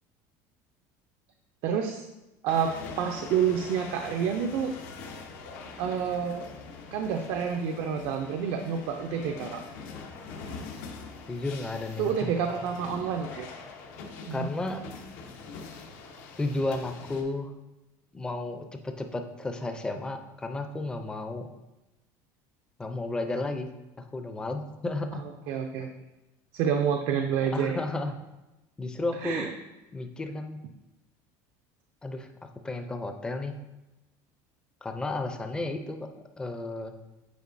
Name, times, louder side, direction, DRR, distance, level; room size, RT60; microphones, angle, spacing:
voice 1, 1.6-2.1 2.4-4.7 5.8-6.5 6.9-9.6 12.0-13.5 14.3-15.0 25.2-25.9 26.5-27.8 29.2-29.5, right 7 dB, 65° right, 5 dB, 0.5 m, -29 dB
sound 1, 2.5-17.2, left 4 dB, 85° left, 0.9 m, -43 dB
voice 2, 11.3-12.3 14.3-14.8 16.4-17.5 18.1-21.5 22.8-23.7 24.0-25.3 27.5-28.1 28.8-29.5 29.9-30.6 32.0-32.3 32.6-33.6 34.8-36.1 36.4-37.0, left 2 dB, 10° left, 6 dB, 0.4 m, -33 dB
8.2 x 4.4 x 2.6 m, 1.0 s
cardioid pair, 155°, 9 cm